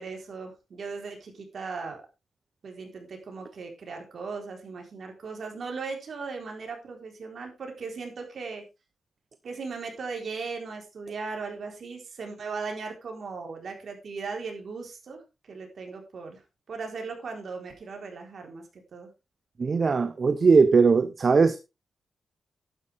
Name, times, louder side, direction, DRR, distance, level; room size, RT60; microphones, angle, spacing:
voice 1, 0.0-2.0 2.6-8.6 9.4-15.2 15.5-16.4 16.7-19.1, right 4 dB, 55° right, 3.9 m, -38 dB
voice 2, 19.6-21.6, right 4 dB, 40° right, 0.7 m, -20 dB
11.5 x 9.8 x 3.5 m
wide cardioid pair, 145°, 0 cm